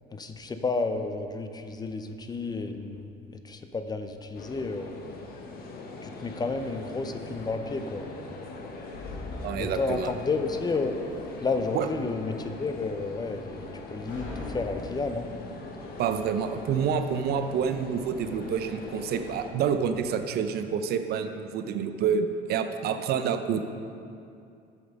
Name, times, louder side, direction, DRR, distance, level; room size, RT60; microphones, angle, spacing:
voice 1, 0.1-3.1 3.4-4.9 6.0-8.1 9.6-11.0 11.4-15.3, left 3 dB, 20° left, 7 dB, 0.6 m, -31 dB
sound 1, 4.3-19.5, left 3 dB, 55° left, 1.1 m, -42 dB
sound 2, 6.4-20.1, left 2 dB, 80° left, 2.4 m, -46 dB
voice 2, 9.4-10.1 11.7-11.9 16.0-23.6, right 7 dB, 60° right, 8 dB, 0.6 m, -28 dB
8.2 x 7.1 x 5.3 m, 2.5 s
cardioid pair, 115°, 19 cm